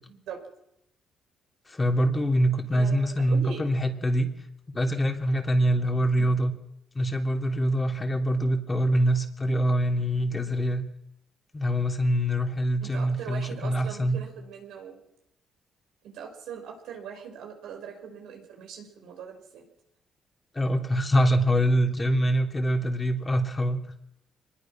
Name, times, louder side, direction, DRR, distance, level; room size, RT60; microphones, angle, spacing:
voice 1, 0.1-0.4 2.7-3.6 6.2-6.4 12.8-15.0 16.0-19.7, right 7 dB, 90° right, 3 dB, 5.1 m, -41 dB
voice 2, 1.7-4.3 4.7-6.5 6.9-10.8 11.5-14.2 20.5-23.8, equal, 25° left, 3 dB, 3.2 m, -24 dB
24.0 x 20.5 x 6.2 m, 0.80 s
cardioid pair, 90°, 0 cm